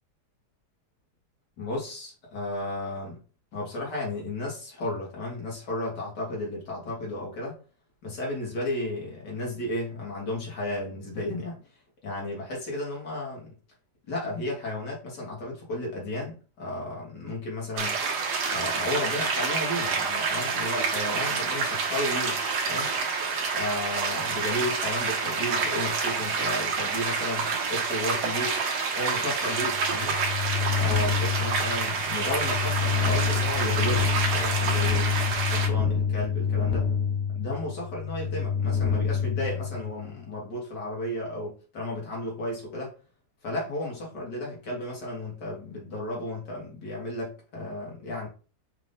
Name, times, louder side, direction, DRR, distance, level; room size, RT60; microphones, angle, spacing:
voice 1, 1.6-3.2 3.5-7.5 8.0-11.6 12.0-13.5 14.1-18.0 18.5-22.9 23.5-28.6 29.0-30.2 30.7-35.2 35.5-36.9 37.3-42.9 43.4-48.3, left 1 dB, 90° left, 2.3 m, -33 dB
sound 1, 17.8-35.7, right 5 dB, 75° right, 1.5 m, -28 dB
sound 2, 29.6-40.2, left 6 dB, 55° left, 0.8 m, -27 dB
5.1 x 2.6 x 3.5 m
omnidirectional pair, 1.8 m